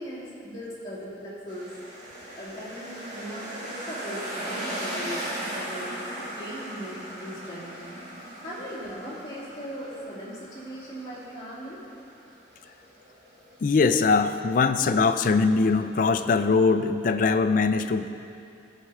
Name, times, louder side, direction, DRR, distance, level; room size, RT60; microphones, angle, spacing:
voice 1, 0.0-1.7 2.3-8.0 8.4-11.8, equal, 20° left, -9 dB, 2.4 m, -39 dB
sound 1, 1.5-14.6, right 1 dB, 40° right, 2.4 m, -38 dB
voice 2, 13.6-18.1, left 4 dB, 45° left, 9 dB, 0.3 m, -22 dB
14.0 x 4.7 x 5.5 m, 2.7 s
head